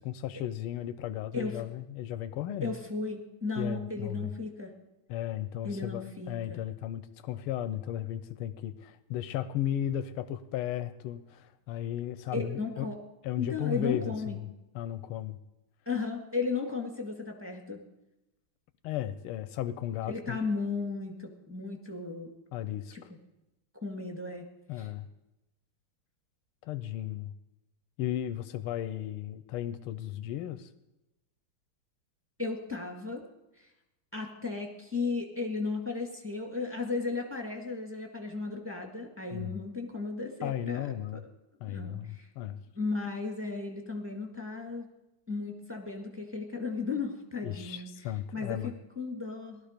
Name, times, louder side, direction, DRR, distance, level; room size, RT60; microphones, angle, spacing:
voice 1, 0.0-2.8 3.6-4.3 5.1-12.9 13.2-14.5 14.8-15.4 18.8-20.4 22.5-22.9 24.7-25.1 26.6-27.3 28.0-30.7 39.3-39.5 40.4-41.3 41.6-42.6 47.4-48.7, left 12 dB, 90° left, 12 dB, 1.6 m, -35 dB
voice 2, 2.6-4.7 5.6-6.6 12.3-13.0 13.4-14.4 15.9-17.8 20.1-22.3 22.9-23.0 23.8-24.4 24.8-24.9 32.4-33.2 34.1-41.2 41.7-42.3 42.8-44.9 45.3-47.9 48.3-49.6, left 4 dB, 5° right, 1 dB, 1.6 m, -35 dB
18.0 x 12.5 x 5.1 m, 0.96 s
omnidirectional pair, 2.4 m